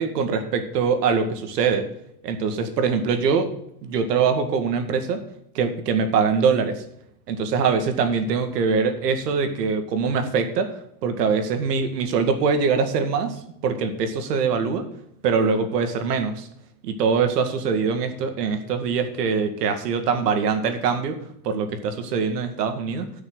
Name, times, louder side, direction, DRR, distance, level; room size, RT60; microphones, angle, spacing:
voice 1, 0.0-1.9 2.2-3.5 3.8-5.2 5.5-6.8 7.3-10.7 11.0-14.9 15.2-16.5 16.8-21.2 21.4-23.1, right 5 dB, 85° right, 6 dB, 2.2 m, -23 dB
11.5 x 6.4 x 6.3 m, 0.73 s
supercardioid pair, 140°, 47 cm